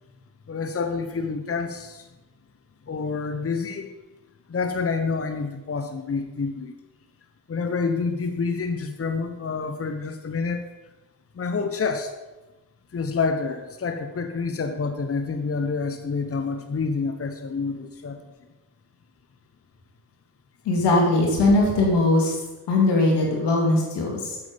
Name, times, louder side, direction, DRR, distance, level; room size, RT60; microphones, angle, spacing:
voice 1, 0.5-2.1 2.9-3.9 4.5-6.7 7.5-10.7 11.3-12.1 12.9-18.2, left 4 dB, 35° left, 7 dB, 1.0 m, -28 dB
voice 2, 20.6-22.4 22.7-24.4, left 2 dB, 85° left, -1 dB, 2.4 m, -20 dB
8.1 x 7.2 x 5.2 m, 1.1 s
supercardioid pair, 50°, 40 cm